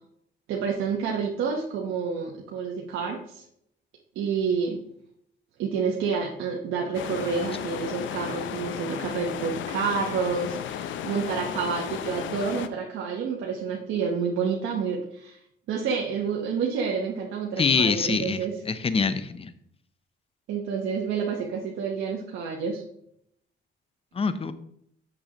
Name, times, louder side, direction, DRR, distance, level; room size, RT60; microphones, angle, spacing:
voice 1, 0.5-3.4 4.1-4.8 5.6-15.4 15.7-18.5 20.5-22.8, right 6 dB, 85° right, -1 dB, 1.0 m, -29 dB
sound 1, 6.9-12.7, left 9 dB, 75° left, 0.5 m, -34 dB
voice 2, 17.6-19.5 24.1-24.5, left 5 dB, 30° left, 13 dB, 0.6 m, -25 dB
7.9 x 6.3 x 2.9 m, 0.72 s
cardioid pair, 90°, 20 cm